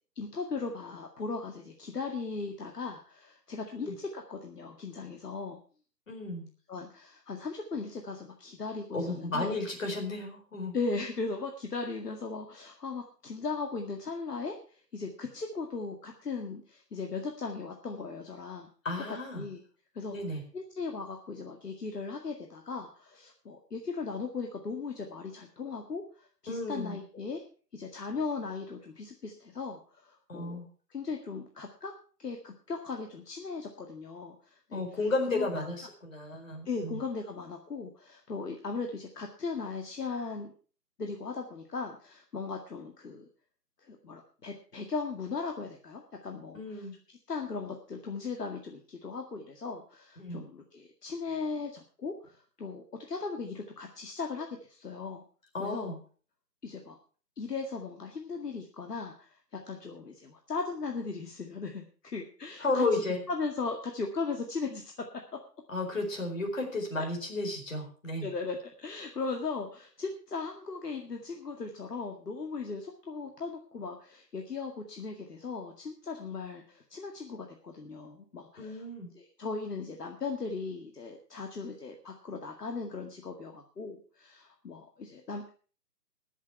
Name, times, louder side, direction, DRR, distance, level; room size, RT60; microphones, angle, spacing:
voice 1, 0.2-5.6 6.7-9.5 10.7-18.7 19.1-19.6 19.9-20.2 20.5-27.4 27.7-30.6 30.9-31.9 32.2-34.8 35.3-35.7 36.7-40.5 41.0-43.3 43.8-46.9 47.3-55.2 55.6-55.9 56.6-57.0 57.4-59.4 59.7-64.9 67.0-67.1 68.2-78.8 79.1-85.5, left 4 dB, 70° left, 3 dB, 2.1 m, -38 dB
voice 2, 6.1-6.5 8.9-10.7 18.8-19.4 20.1-20.4 26.5-27.0 30.3-30.7 34.7-37.0 46.5-46.9 50.2-50.4 55.5-56.0 62.6-63.2 65.7-68.3 78.6-79.1, left 2 dB, 50° left, 2 dB, 4.6 m, -33 dB
20.0 x 7.5 x 4.7 m, 0.39 s
hypercardioid pair, 180°, 49 cm